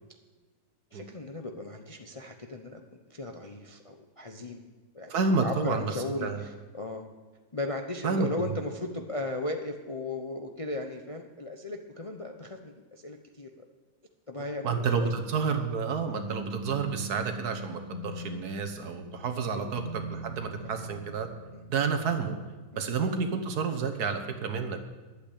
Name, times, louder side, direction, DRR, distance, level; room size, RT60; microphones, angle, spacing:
voice 1, 0.9-4.6 4.9-5.1 5.4-7.1 7.5-13.5 14.3-15.1 18.8-19.1 19.5-19.8 20.5-20.9 21.5-21.7 22.7-23.0, left 2 dB, 30° left, 4 dB, 0.6 m, -37 dB
voice 2, 5.1-5.9 6.2-6.4 8.0-8.3 14.6-21.3 21.7-22.4 22.8-25.0, right 5 dB, 70° right, 6 dB, 1.7 m, -30 dB
sound 1, 16.1-22.4, equal, 55° left, 1.9 m, -42 dB
11.5 x 8.2 x 8.5 m, 1.3 s
omnidirectional pair, 1.7 m